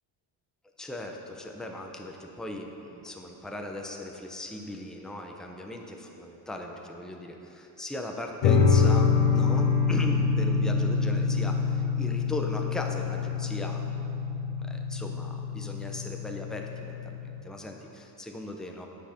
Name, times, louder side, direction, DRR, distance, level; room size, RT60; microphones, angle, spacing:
voice 1, 0.8-13.8 14.7-18.9, left 1 dB, ahead, 1 dB, 0.7 m, -38 dB
sound 1, 8.4-17.4, left 5 dB, 75° left, 1.2 m, -26 dB
10.0 x 6.6 x 5.8 m, 3.0 s
cardioid pair, 125°, 41 cm